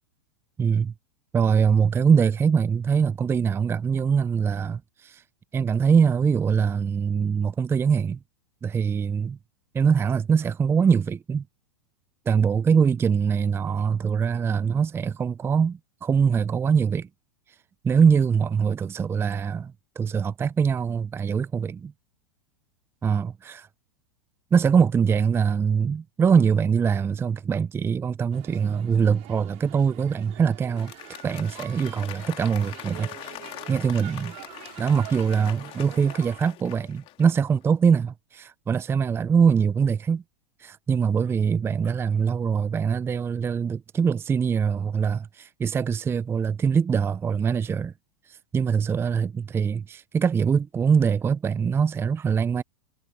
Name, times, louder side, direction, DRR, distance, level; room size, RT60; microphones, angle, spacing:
voice 1, 0.6-0.9 1.3-5.2 5.5-8.2 8.6-9.4 9.7-11.4 12.3-17.1 17.8-21.9 23.0-23.7 24.5-30.9 31.2-33.1 33.7-34.3 34.8-40.2 40.6-47.9 48.5-52.6, right 6 dB, 15° right, 0.6 m, -23 dB
sound 1, 28.3-36.4, right 22 dB, 45° right, 5.5 m, -45 dB
Applause, 30.6-37.6, left 16 dB, 40° left, 4.0 m, -42 dB
hypercardioid pair, 100°, 15 cm